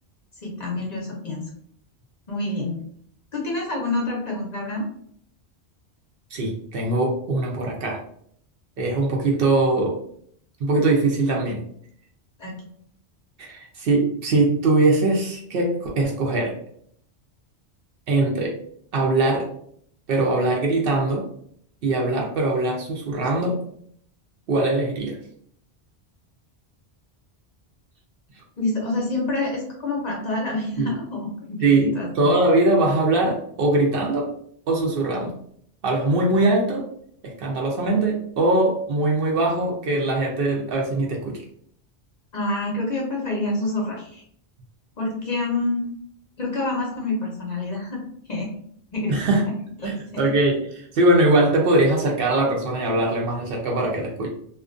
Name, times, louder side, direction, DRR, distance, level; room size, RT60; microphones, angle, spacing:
voice 1, 0.4-1.5 2.3-2.8 3.3-4.8 12.4-12.6 28.6-32.4 42.3-44.2 45.0-45.9 46.4-48.0 48.3-48.5 48.9-49.2 49.5-49.6 49.8-50.3, left 2 dB, 50° left, -2 dB, 0.6 m, -27 dB
voice 2, 6.3-8.0 8.8-10.0 10.6-11.7 13.4-16.6 18.1-18.6 18.9-19.5 20.1-21.3 21.8-23.6 24.5-25.1 30.8-31.0 31.6-34.3 34.7-35.3 35.8-36.9 37.2-41.4 49.1-49.5 49.8-54.3, right 2 dB, 65° right, -1 dB, 0.7 m, -21 dB
2.4 x 2.1 x 2.4 m, 0.65 s
omnidirectional pair, 1.1 m